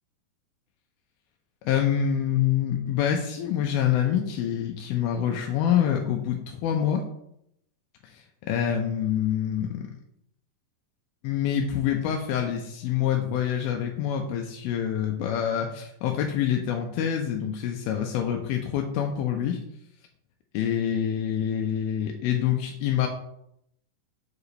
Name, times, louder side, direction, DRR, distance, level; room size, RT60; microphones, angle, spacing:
voice 1, 1.6-7.0 8.0-9.9 11.2-19.6 20.5-23.1, left 9 dB, 85° left, 3 dB, 2.4 m, -26 dB
6.8 x 4.8 x 3.2 m, 0.76 s
omnidirectional pair, 4.2 m